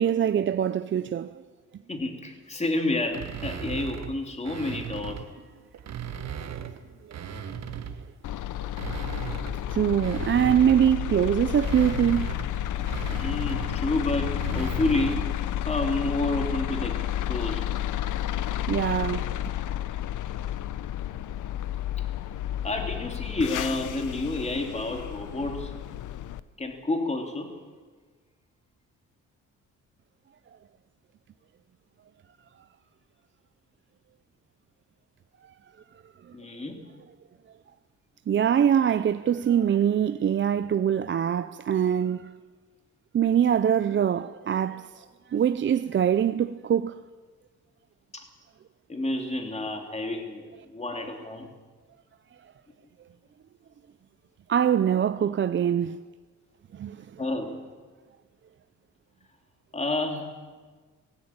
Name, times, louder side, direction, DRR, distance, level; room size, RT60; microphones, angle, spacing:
voice 1, 0.0-1.3 6.2-6.7 7.3-7.4 9.7-12.3 18.7-19.3 36.3-36.4 38.3-42.3 43.1-47.0 54.5-56.0 56.7-57.1, right 9 dB, 40° right, 0.5 m, -24 dB
voice 2, 1.9-5.2 13.1-17.0 17.3-17.7 22.6-25.7 26.6-27.5 36.3-36.8 48.1-48.3 48.9-51.5 57.2-57.6 59.7-60.3, left 2 dB, 20° left, 2.9 m, -30 dB
sound 1, 3.1-5.3 5.7-8.2 8.6-15.4, right 7 dB, 60° right, 1.6 m, -38 dB
sound 2, 8.2-26.4, left 12 dB, 75° left, 0.8 m, -31 dB
19.0 x 16.5 x 8.8 m
cardioid pair, 115°, 31 cm